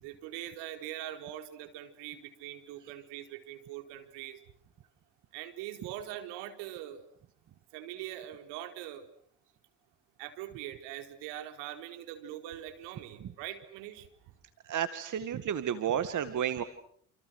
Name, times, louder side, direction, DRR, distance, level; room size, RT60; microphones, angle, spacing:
voice 1, 0.0-4.4 5.3-7.0 7.7-9.1 10.2-14.3, right 12 dB, 65° right, 7 dB, 4.7 m, -42 dB
voice 2, 14.6-16.6, right 9 dB, 40° right, 11 dB, 2.2 m, -31 dB
29.0 x 28.5 x 6.6 m, 0.66 s
hypercardioid pair, 70°, 44 cm